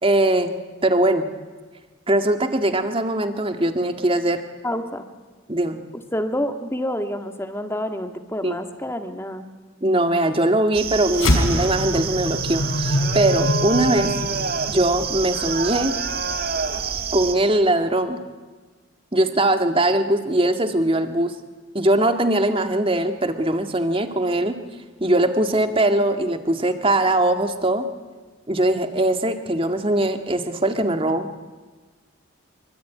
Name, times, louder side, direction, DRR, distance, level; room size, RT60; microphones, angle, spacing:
voice 1, 0.0-1.2 2.1-4.4 5.5-5.8 8.4-8.6 9.8-14.1 14.7-16.0 17.1-18.2 19.1-21.3 21.7-24.6 25.0-27.9 28.5-31.3, right 1 dB, 25° right, 7 dB, 1.9 m, -21 dB
voice 2, 4.6-5.0 6.1-9.4, left 1 dB, 10° left, 7 dB, 1.9 m, -28 dB
sound 1, 10.7-17.4, right 5 dB, 45° right, 1.9 m, -27 dB
sound 2, 11.1-15.8, left 1 dB, 90° left, 4.6 m, -25 dB
26.0 x 24.0 x 9.4 m, 1.4 s
head